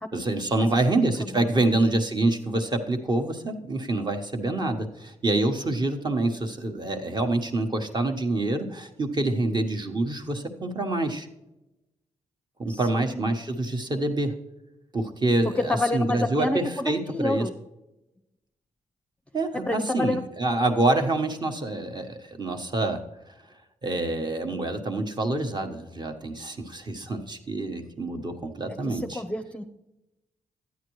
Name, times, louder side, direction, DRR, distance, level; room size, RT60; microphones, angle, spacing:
voice 1, 0.1-11.3 12.6-14.4 14.9-17.5 19.3-23.0 23.8-29.2, right 2 dB, 35° right, 4 dB, 1.2 m, -26 dB
voice 2, 12.7-13.2 15.6-17.5 19.5-20.2 28.9-29.6, left 2 dB, 10° left, 5 dB, 0.6 m, -28 dB
12.5 x 9.4 x 3.1 m, 0.97 s
cardioid pair, 85°, 13 cm